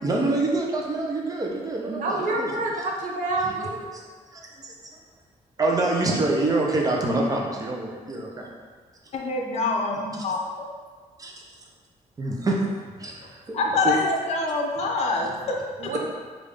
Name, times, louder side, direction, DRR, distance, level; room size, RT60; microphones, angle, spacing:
voice 1, 0.0-2.5 3.4-3.5 3.9-4.0 4.3-4.7 5.6-8.5 10.1-10.2 11.2-11.3 12.2-12.6 13.0-13.5 13.8-13.9, right 2 dB, 25° right, -1 dB, 0.8 m, -26 dB
voice 2, 1.9-3.8 15.8-16.0, right 2 dB, 70° right, -1 dB, 0.9 m, -27 dB
voice 3, 9.1-10.5 13.5-15.6 15.8-16.0, left 3 dB, 50° left, 0 dB, 0.7 m, -25 dB
5.1 x 2.6 x 3.5 m, 1.5 s
cardioid pair, 115°, 13 cm